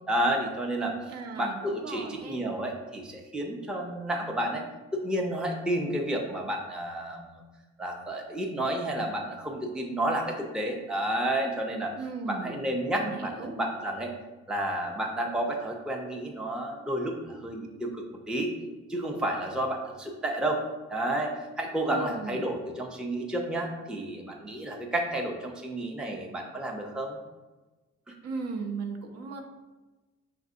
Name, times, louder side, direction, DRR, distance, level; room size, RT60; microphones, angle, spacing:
voice 1, 0.1-4.6 4.9-7.4 7.8-11.9 12.2-14.1 14.5-18.5 18.9-20.6 20.9-27.2 28.1-28.2, right 1 dB, 5° right, 1 dB, 0.5 m, -31 dB
voice 2, 1.1-2.5 12.0-12.6 13.0-13.5 21.9-22.5 28.2-29.4, right 4 dB, 60° right, 3 dB, 0.7 m, -37 dB
5.7 x 2.6 x 2.5 m, 1.2 s
supercardioid pair, 65°, 29 cm